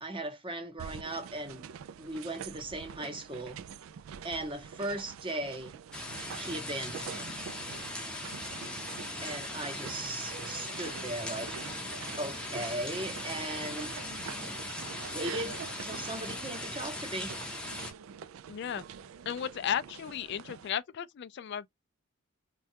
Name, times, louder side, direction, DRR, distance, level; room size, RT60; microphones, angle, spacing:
voice 1, 0.0-1.6 2.0-3.6 4.2-5.8 6.4-7.4 9.2-11.5 12.2-14.0 15.1-17.3, right 1 dB, 25° right, 0.8 m, -38 dB
sound 1, 0.8-20.7, right 7 dB, 80° right, 0.3 m, -46 dB
sound 2, 5.9-17.9, left 1 dB, 5° left, 0.6 m, -39 dB
voice 2, 18.5-18.8 19.3-21.7, left 8 dB, 55° left, 0.3 m, -34 dB
3.2 x 2.3 x 2.7 m
head